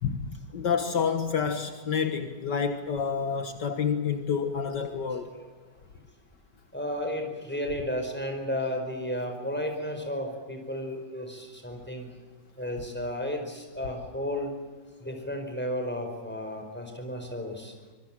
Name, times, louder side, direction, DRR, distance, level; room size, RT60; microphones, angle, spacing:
voice 1, 0.0-5.3, left 6 dB, 65° left, 2.0 m, -29 dB
voice 2, 6.7-12.1 12.6-14.5 15.0-17.8, left 1 dB, 5° left, 4.9 m, -33 dB
25.5 x 22.0 x 7.5 m
omnidirectional pair, 2.1 m